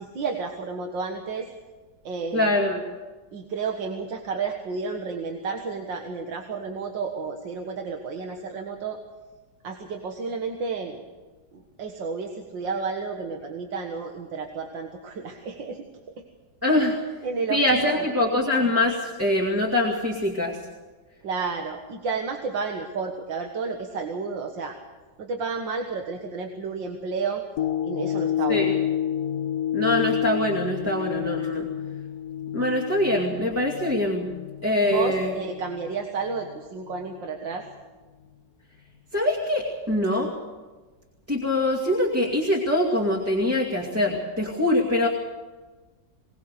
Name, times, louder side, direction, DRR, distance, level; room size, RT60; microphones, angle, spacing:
voice 1, 0.0-1.5 2.0-2.6 3.3-9.0 9.6-11.0 11.5-15.9 17.2-17.6 17.9-18.1 21.2-24.8 25.2-27.4 27.8-28.7 34.8-37.7, right 5 dB, 85° right, 3 dB, 2.2 m, -31 dB
voice 2, 2.3-2.8 16.6-17.0 17.5-20.6 28.5-28.7 29.7-31.7 32.5-34.3 34.6-35.3 39.1-40.3 41.3-45.1, left 1 dB, 10° right, -4 dB, 2.1 m, -23 dB
sound 1, 27.6-36.0 36.5-36.6, left 10 dB, 65° left, 1.2 m, -29 dB
22.5 x 19.0 x 6.8 m, 1.3 s
omnidirectional pair, 2.0 m